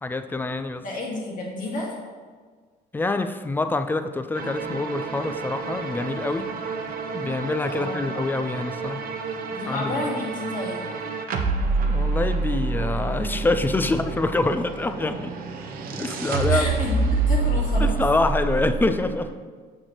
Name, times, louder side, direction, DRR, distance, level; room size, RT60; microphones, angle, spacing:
voice 1, 0.0-0.8 2.9-6.5 7.1-9.0 9.7-10.0 11.9-15.3 16.0-16.7 17.8-19.3, left 2 dB, 10° left, 9 dB, 0.3 m, -26 dB
voice 2, 0.8-1.9 7.7-8.1 9.5-10.9 16.5-18.0, left 2 dB, 55° left, -3 dB, 1.9 m, -31 dB
sound 1, 4.4-19.3, right 3 dB, 60° right, 0.7 m, -27 dB
6.4 x 6.4 x 3.0 m, 1.5 s
cardioid pair, 110°, 17 cm